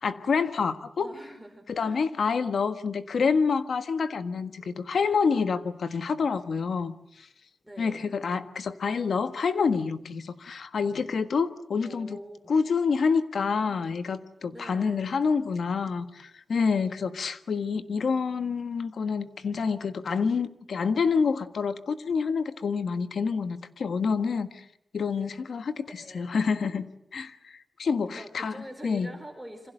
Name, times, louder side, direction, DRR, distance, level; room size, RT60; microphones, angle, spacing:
voice 1, 0.0-1.1 1.7-7.3 7.8-12.2 12.5-24.6 24.9-25.9 26.1-28.6 28.8-29.1, left 5 dB, 80° left, 1.5 m, -27 dB
voice 2, 1.0-2.0 7.6-8.1 11.8-12.5 14.5-15.1 26.0-26.4 28.1-29.7, equal, 5° right, 4.6 m, -45 dB
28.0 x 26.0 x 7.9 m
wide cardioid pair, 90°, 0 cm